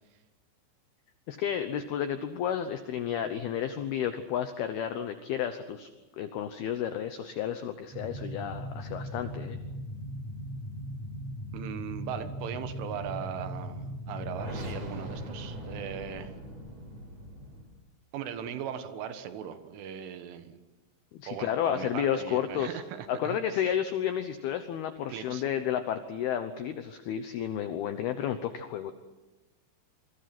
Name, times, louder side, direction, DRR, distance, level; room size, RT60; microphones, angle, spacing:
voice 1, 1.3-5.9 6.2-9.6 21.1-22.8 23.1-28.9, left 9 dB, 80° left, 9 dB, 2.2 m, -31 dB
sound 1, 7.9-17.6, equal, 30° right, 5.2 m, -39 dB
voice 2, 11.5-16.3 18.1-20.6 21.3-23.6 25.1-25.4, right 9 dB, 75° right, 9 dB, 3.8 m, -39 dB
27.5 x 24.5 x 6.0 m, 1.1 s
omnidirectional pair, 5.9 m